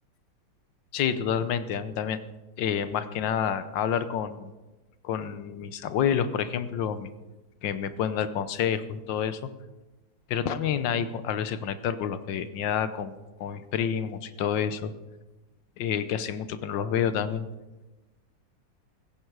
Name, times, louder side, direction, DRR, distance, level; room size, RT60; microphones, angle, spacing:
voice 1, 0.9-2.2 2.6-4.5 5.0-7.1 7.6-9.5 10.3-14.9 15.8-17.5, left 8 dB, 90° left, 12 dB, 1.6 m, -28 dB
15.5 x 15.0 x 4.8 m, 1.1 s
omnidirectional pair, 1.9 m